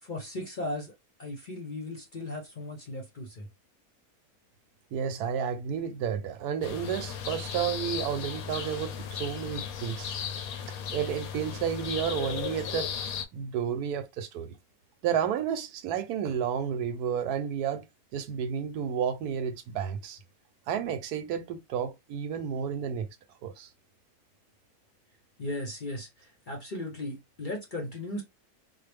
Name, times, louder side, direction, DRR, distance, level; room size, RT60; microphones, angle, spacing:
voice 1, 0.0-0.9 1.2-3.5 25.4-28.2, left 1 dB, 45° left, 0.7 m, -37 dB
voice 2, 4.9-10.1 10.9-12.9 13.3-14.5 15.0-17.8 18.1-20.2 20.7-23.1 23.4-23.7, right 8 dB, 90° right, 1.2 m, -31 dB
sound 1, 6.6-13.2, left 7 dB, 75° left, 1.0 m, -36 dB
4.6 x 2.0 x 3.3 m
omnidirectional pair, 1.6 m